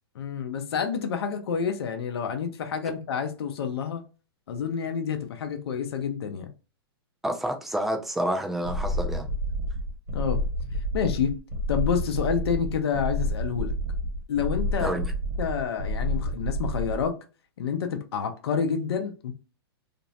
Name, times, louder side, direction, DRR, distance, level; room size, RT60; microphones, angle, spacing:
voice 1, 0.2-4.0 4.5-6.5 10.1-10.4 10.9-11.4 11.7-13.7 14.3-15.0 15.4-17.2 17.6-19.3, left 7 dB, 75° left, 0.6 m, -28 dB
voice 2, 7.2-9.3 14.8-15.1, right 1 dB, ahead, 0.3 m, -29 dB
sound 1, 8.6-17.1, equal, 55° right, 1.1 m, -29 dB
2.5 x 2.0 x 2.7 m
hypercardioid pair, 145°, 13 cm